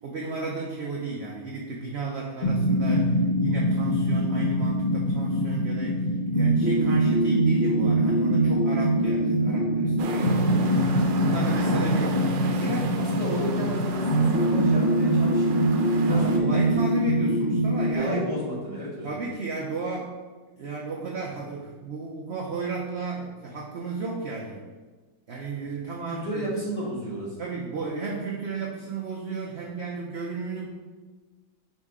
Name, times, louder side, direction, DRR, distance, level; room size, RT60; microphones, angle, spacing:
voice 1, 0.0-13.0 16.1-18.2 19.0-20.1 20.6-24.6 25.3-26.5 27.4-30.7, right 3 dB, 70° right, -2 dB, 0.6 m, -34 dB
sound 1, 2.4-17.9, right 1 dB, 90° left, 0.4 m, -23 dB
sound 2, 10.0-16.4, right 5 dB, 85° right, 1.3 m, -36 dB
voice 2, 12.9-15.5 16.0-17.1 17.9-19.2 25.5-25.6 26.1-27.5, equal, 20° left, -6 dB, 1.3 m, -33 dB
5.4 x 4.8 x 3.6 m, 1.3 s
omnidirectional pair, 1.9 m